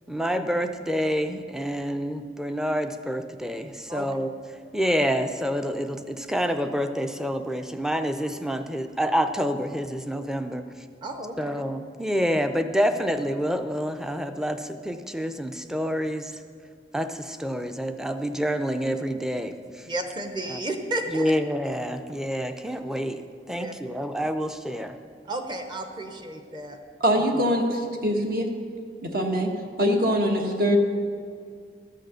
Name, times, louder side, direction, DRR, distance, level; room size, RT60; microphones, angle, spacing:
voice 1, 0.1-4.3 4.7-10.6 11.4-16.3 16.9-19.9 20.5-20.6 21.1-25.0, equal, 5° right, 8 dB, 0.5 m, -28 dB
voice 2, 11.0-11.6 19.9-21.3 23.5-23.7 25.3-26.8, right 1 dB, 25° right, 5 dB, 0.9 m, -32 dB
voice 3, 27.0-28.5 29.0-29.5 29.8-30.8, equal, 55° right, 3 dB, 1.3 m, -23 dB
13.0 x 6.5 x 6.8 m, 2.2 s
head